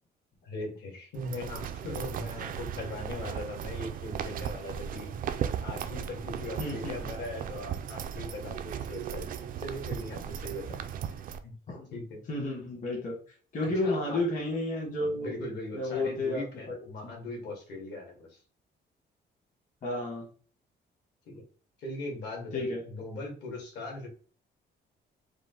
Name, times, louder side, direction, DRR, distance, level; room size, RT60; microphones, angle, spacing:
voice 1, 0.4-5.1 5.6-10.8 11.4-11.5 11.9-12.2 13.6-14.2 15.1-18.4 21.3-21.4 21.8-24.1, left 2 dB, 70° left, 0 dB, 1.8 m, -40 dB
sound 1, 1.1-11.4, right 8 dB, 50° right, 0.4 m, -36 dB
voice 2, 6.6-7.1 11.7-11.9 12.3-13.1 13.5-15.3 15.7-16.4 16.7-16.8 19.8-20.3 22.5-22.8, left 2 dB, 45° left, -2 dB, 1.3 m, -31 dB
4.9 x 2.1 x 3.7 m, 0.41 s
cardioid pair, 175°, 18 cm